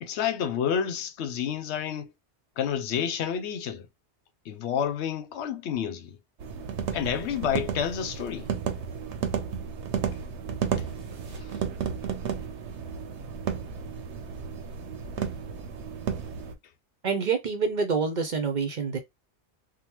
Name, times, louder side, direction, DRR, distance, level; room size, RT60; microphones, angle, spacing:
voice 1, 0.0-2.1 2.6-3.9 4.5-6.2 6.9-8.5, left 8 dB, 80° left, 0.9 m, -29 dB
sound 1, 6.4-16.5, right 7 dB, 85° right, 0.9 m, -33 dB
voice 2, 17.0-19.0, right 5 dB, 50° right, 0.6 m, -27 dB
3.6 x 2.1 x 2.9 m
omnidirectional pair, 1.1 m